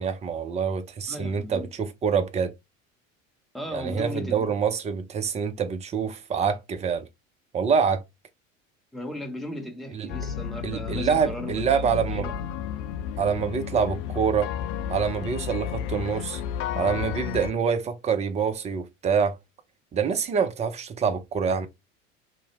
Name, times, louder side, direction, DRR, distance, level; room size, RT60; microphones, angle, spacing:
voice 1, 0.0-2.5 3.7-7.1 7.5-8.0 9.9-10.1 10.6-12.3 13.2-14.5 14.9-16.4 16.8-19.4 19.9-21.7, right 6 dB, 20° right, 0.4 m, -26 dB
voice 2, 1.1-1.7 3.5-4.5 8.9-12.4, left 1 dB, ahead, 0.8 m, -36 dB
sound 1, 10.1-17.5, left 9 dB, 55° left, 0.5 m, -32 dB
2.7 x 2.0 x 2.8 m
figure-of-eight pair, 70°, 40 cm